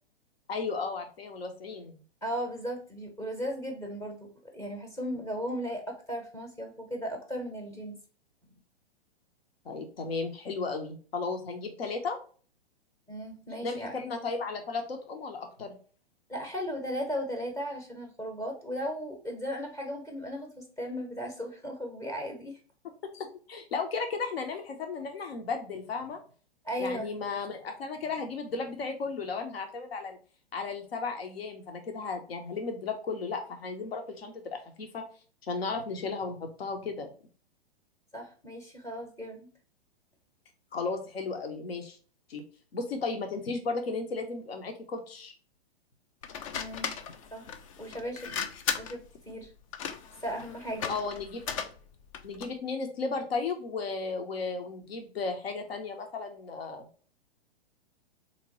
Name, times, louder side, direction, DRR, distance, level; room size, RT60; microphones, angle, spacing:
voice 1, 0.5-1.9 9.6-12.2 13.6-15.7 23.1-26.2 26.8-30.2 30.5-35.0 35.5-37.1 40.7-42.0 42.3-42.4 42.7-45.3 50.9-51.5 52.2-56.8, left 4 dB, 70° left, 4 dB, 0.9 m, -34 dB
voice 2, 2.2-8.0 13.1-13.9 16.3-22.6 26.6-27.1 38.1-39.5 46.5-46.9 47.3-47.5 47.8-48.3 48.8-49.5 50.2-50.9, equal, 10° left, 2 dB, 0.7 m, -36 dB
sound 1, 46.2-52.6, left 7 dB, 35° left, 0.4 m, -37 dB
3.7 x 2.9 x 2.9 m, 0.41 s
figure-of-eight pair, 115°, 31 cm